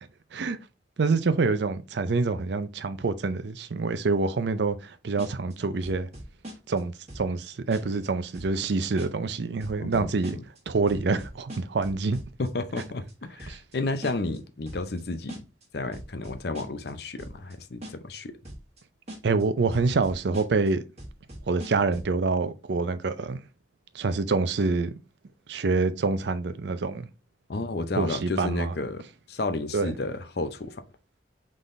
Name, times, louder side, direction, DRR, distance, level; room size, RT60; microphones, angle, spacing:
voice 1, 1.0-6.1 6.7-10.4 10.7-12.2 13.5-13.6 19.2-20.8 21.5-23.4 23.9-24.9 25.5-27.1 28.0-28.7 29.7-29.9, right 4 dB, 70° right, 0.5 m, -26 dB
sound 1, 5.2-5.5 5.8-6.8 7.1-7.4 7.7-8.1 8.3-8.7 9.0-9.3 9.6-10.6 10.9-12.5 12.8-13.1 13.4-13.8 14.0-14.4 14.7-15.0 15.3-15.6 15.9-16.9 17.2-17.5 17.8-18.2 18.4-18.8 19.1-19.4 19.7-20.7 21.0-22.1, right 1 dB, 35° right, 1.4 m, -41 dB
voice 2, 9.8-10.4 12.4-13.0 13.3-15.4 15.7-18.3 27.5-29.0 29.3-30.8, left 2 dB, 60° left, 0.6 m, -32 dB
4.0 x 3.7 x 3.1 m
head